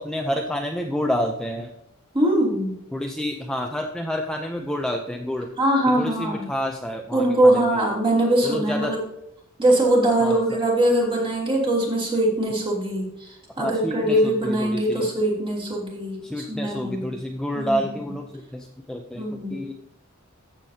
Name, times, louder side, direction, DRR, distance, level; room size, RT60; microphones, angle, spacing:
voice 1, 0.0-1.7 2.9-5.5 5.9-7.8 8.4-8.9 10.2-10.6 13.6-15.1 16.2-19.7, equal, 5° left, 2 dB, 0.5 m, -29 dB
voice 2, 2.1-2.7 5.6-6.4 7.1-9.0 9.6-17.0 17.5-18.1 19.2-19.6, right 1 dB, 25° right, -4 dB, 2.9 m, -22 dB
13.5 x 7.3 x 2.8 m, 0.80 s
head